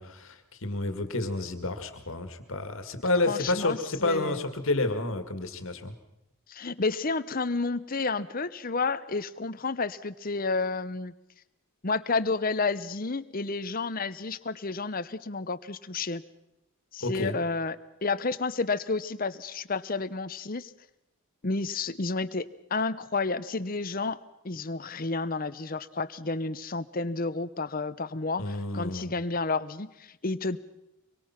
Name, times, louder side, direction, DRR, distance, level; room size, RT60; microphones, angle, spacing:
voice 1, 0.0-5.9 17.0-17.4 28.4-29.1, left 2 dB, 65° left, 8 dB, 2.1 m, -30 dB
voice 2, 3.3-4.4 6.5-11.1 11.8-16.2 16.9-17.8 18.0-20.7 21.4-24.2 24.4-30.6, left 3 dB, 40° left, 14 dB, 0.8 m, -31 dB
25.0 x 23.0 x 5.9 m, 0.87 s
head